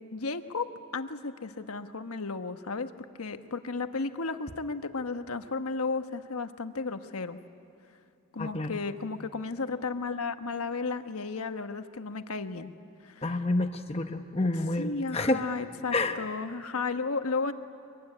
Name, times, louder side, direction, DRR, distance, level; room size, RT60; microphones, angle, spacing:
voice 1, 0.1-0.7 0.9-2.9 3.2-7.4 8.3-12.7 13.0-13.4 14.5-17.5, left 4 dB, 85° left, 8 dB, 1.2 m, -34 dB
voice 2, 8.4-8.8 13.2-15.4 15.9-16.2, left 2 dB, 25° left, 6 dB, 0.9 m, -29 dB
24.5 x 23.0 x 9.9 m, 2.8 s
head